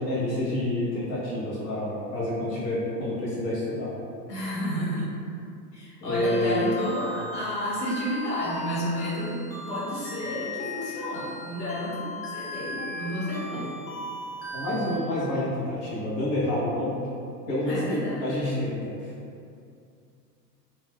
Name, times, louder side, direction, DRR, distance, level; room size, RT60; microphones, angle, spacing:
voice 1, 0.0-3.9 6.0-6.7 14.5-17.0 17.5-19.1, left 1 dB, 40° left, -8 dB, 0.7 m, -28 dB
voice 2, 4.3-5.1 5.7-9.4 9.7-12.1 12.3-13.8 17.6-18.2, equal, 70° left, -8 dB, 1.3 m, -31 dB
sound 1, 6.2-15.0, left 2 dB, 85° left, 0.8 m, -38 dB
2.3 x 2.2 x 3.3 m, 2.4 s
hypercardioid pair, 100°, 50 cm